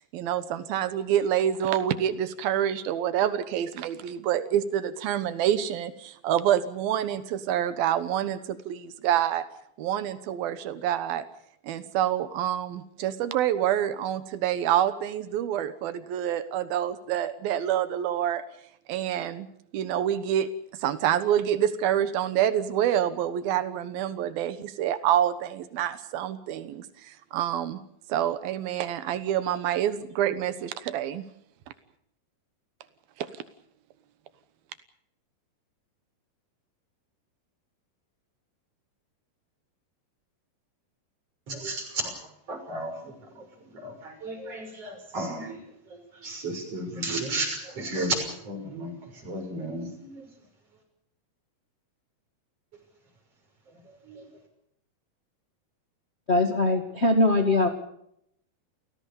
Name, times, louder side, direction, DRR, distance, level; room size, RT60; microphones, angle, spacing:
voice 1, 0.1-9.5 9.8-11.2 11.6-18.4 18.9-20.5 20.8-27.8 28.1-31.3 33.2-33.3, right 10 dB, 90° right, 12 dB, 3.1 m, -27 dB
voice 2, 41.5-42.2 42.5-43.4 43.7-45.6 45.9-48.9 49.2-50.3 54.1-54.2, right 2 dB, 40° right, 4 dB, 7.3 m, -33 dB
voice 3, 56.3-57.7, left 2 dB, 25° left, 4 dB, 1.6 m, -21 dB
29.5 x 17.5 x 7.0 m, 0.74 s
omnidirectional pair, 4.1 m